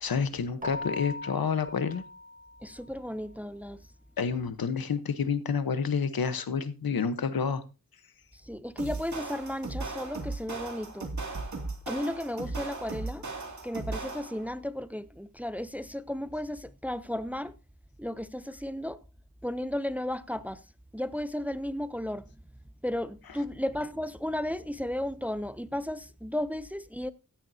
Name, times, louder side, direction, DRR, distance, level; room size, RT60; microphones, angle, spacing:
voice 1, 0.0-2.0 4.2-7.6, left 6 dB, 90° left, 1.1 m, -29 dB
Keyboard (musical), 0.6-3.1, left 2 dB, 25° right, 1.6 m, -40 dB
voice 2, 2.6-3.8 8.4-11.1 11.9-13.3 13.6-17.5 18.0-19.0 19.4-20.6 20.9-22.3 22.8-27.1, left 1 dB, 5° right, 0.5 m, -34 dB
sound 1, 8.8-14.5, right 3 dB, 55° right, 2.4 m, -37 dB
15.5 x 10.5 x 2.7 m
wide cardioid pair, 100°, 35 cm